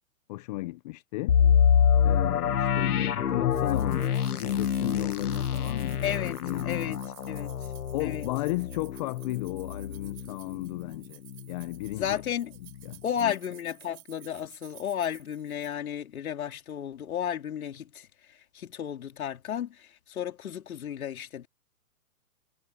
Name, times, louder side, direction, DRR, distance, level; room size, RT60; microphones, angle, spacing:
voice 1, 0.3-1.3 2.0-7.0 7.9-11.2 11.5-12.2 12.8-13.4, left 19 dB, 30° left, 0.7 m, -34 dB
sound 1, 1.3-11.0 11.4-11.5 12.0-12.2, left 8 dB, 90° left, 1.4 m, -26 dB
sound 2, 3.5-15.7, right 35 dB, 35° right, 4.1 m, -54 dB
voice 2, 6.0-6.4 6.6-7.0 7.3-7.6 8.0-8.3 11.9-12.5 13.0-18.1 18.5-21.5, left 9 dB, 70° left, 3.8 m, -33 dB
hypercardioid pair, 145°, 44 cm